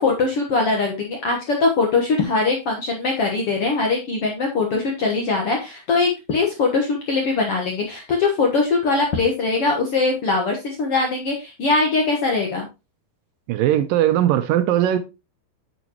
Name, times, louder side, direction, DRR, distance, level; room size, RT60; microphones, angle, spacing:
voice 1, 0.0-12.7, left 3 dB, 60° left, 1.6 m, -21 dB
voice 2, 13.5-15.0, right 12 dB, 80° right, 2.2 m, -19 dB
9.1 x 6.1 x 3.0 m
omnidirectional pair, 4.3 m